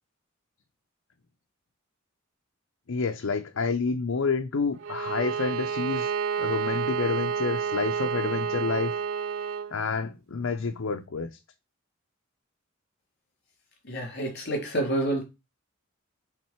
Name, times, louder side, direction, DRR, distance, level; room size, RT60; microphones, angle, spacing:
voice 1, 2.9-6.1 6.4-8.9 9.7-11.3, left 4 dB, 70° left, 0.6 m, -29 dB
Bowed string instrument, 4.8-9.7, right 7 dB, 70° right, 0.5 m, -30 dB
voice 2, 13.9-15.2, right 1 dB, 55° left, 3.8 m, -28 dB
7.5 x 3.6 x 4.4 m
head